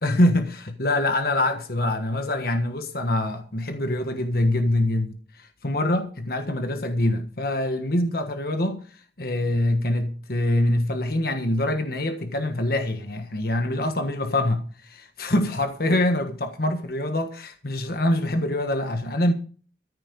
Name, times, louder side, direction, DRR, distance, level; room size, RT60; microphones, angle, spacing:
voice 1, 0.0-8.8 9.2-19.3, left 1 dB, 55° left, 1.4 m, -24 dB
14.5 x 10.0 x 5.3 m
head